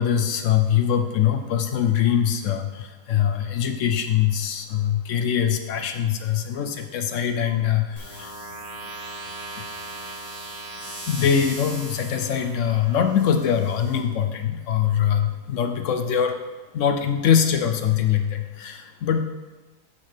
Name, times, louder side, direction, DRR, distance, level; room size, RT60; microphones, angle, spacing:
voice 1, 0.0-8.3 11.1-16.4 16.7-19.2, left 8 dB, 65° left, 7 dB, 0.8 m, -23 dB
sound 1, 8.0-14.0, right 1 dB, 60° right, 2.7 m, -38 dB
6.4 x 5.2 x 5.7 m, 1.2 s
omnidirectional pair, 1.7 m